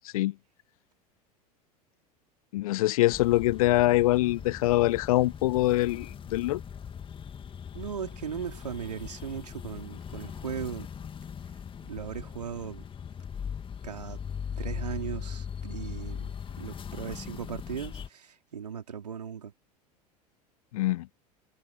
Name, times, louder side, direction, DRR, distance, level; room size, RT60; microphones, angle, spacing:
voice 1, 2.5-6.6 20.7-21.1, left 17 dB, 60° left, 0.7 m, -24 dB
sound 1, 3.1-18.1, left 7 dB, 25° left, 2.4 m, -40 dB
voice 2, 7.7-10.9 11.8-12.8 13.8-14.2 14.6-19.5, right 7 dB, 80° right, 4.3 m, -38 dB
figure-of-eight pair, 80°, 20 cm